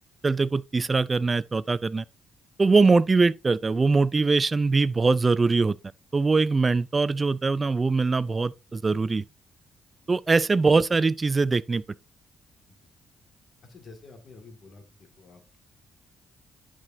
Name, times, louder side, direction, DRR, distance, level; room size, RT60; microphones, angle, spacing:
voice 1, 0.2-2.0 2.6-5.8 6.1-9.2 10.1-11.8, right 4 dB, 30° right, 0.3 m, -22 dB
voice 2, 13.6-14.8 15.2-15.6, left 3 dB, 50° left, 1.9 m, -48 dB
10.5 x 4.9 x 2.6 m
cardioid pair, 90°, 0 cm